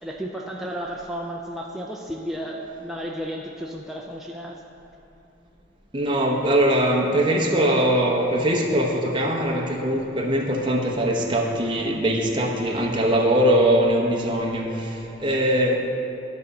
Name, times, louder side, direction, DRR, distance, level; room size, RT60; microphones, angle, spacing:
voice 1, 0.0-4.6, equal, ahead, -2 dB, 0.4 m, -33 dB
voice 2, 5.9-15.8, right 1 dB, 25° right, -1 dB, 0.8 m, -21 dB
11.5 x 4.1 x 6.6 m, 2.8 s
head